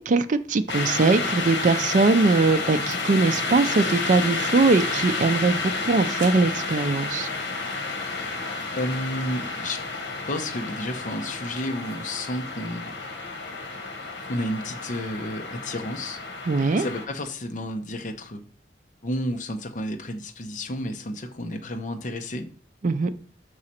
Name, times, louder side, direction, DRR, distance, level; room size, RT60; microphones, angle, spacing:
voice 1, 0.0-7.3 16.5-16.9 22.8-23.1, right 3 dB, 45° right, 10 dB, 0.4 m, -21 dB
sound 1, 0.7-17.1, left 3 dB, 85° left, 1.4 m, -30 dB
voice 2, 8.7-9.8 10.3-12.9 13.4-13.5 14.3-16.2 16.8-18.4 19.0-22.4, left 1 dB, 45° left, 4 dB, 0.8 m, -31 dB
6.2 x 4.8 x 4.3 m, 0.43 s
head